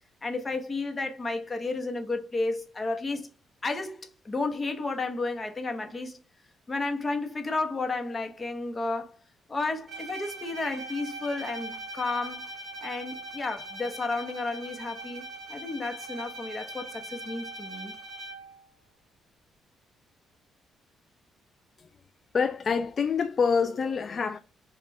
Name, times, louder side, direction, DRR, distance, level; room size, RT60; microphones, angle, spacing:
voice 1, 0.2-3.3 3.6-6.2 6.7-9.2 9.5-12.4 12.8-15.2 15.5-17.9, left 3 dB, 30° left, 1.0 m, -32 dB
Bowed string instrument, 9.9-18.6, right 2 dB, 40° right, 1.6 m, -41 dB
voice 2, 22.3-24.4, left 5 dB, 45° left, 0.3 m, -26 dB
5.2 x 2.4 x 3.2 m
cardioid pair, 90°, 0 cm